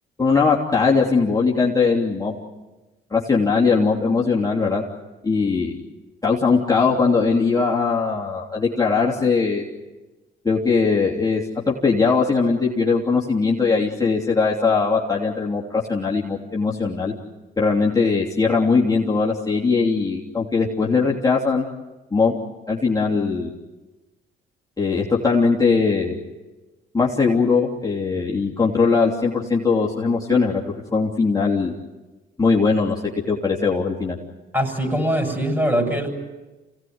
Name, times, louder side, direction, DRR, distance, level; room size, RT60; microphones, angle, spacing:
voice 1, 0.2-2.4 3.1-4.8 5.2-5.8 6.2-9.7 10.4-11.4 11.7-17.1 17.6-21.6 22.1-22.3 22.7-23.5 24.8-26.1 26.9-31.7 32.4-32.9 33.3-34.2, left 4 dB, 20° left, -4 dB, 3.1 m, -20 dB
voice 2, 34.5-36.1, equal, 10° right, 4 dB, 7.7 m, -22 dB
28.0 x 18.0 x 9.6 m, 1.1 s
cardioid pair, 90°, 20 cm